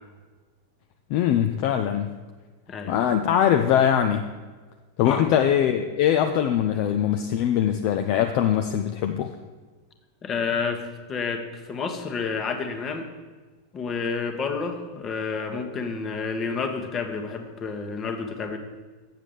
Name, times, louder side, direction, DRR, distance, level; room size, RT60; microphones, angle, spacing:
voice 1, 1.1-2.1 2.9-4.3 5.0-9.3, left 9 dB, 45° left, 6 dB, 0.5 m, -22 dB
voice 2, 10.2-13.1 13.7-18.6, left 5 dB, 25° left, 6 dB, 1.2 m, -30 dB
7.6 x 7.4 x 6.9 m, 1.4 s
figure-of-eight pair, 90°, 0 cm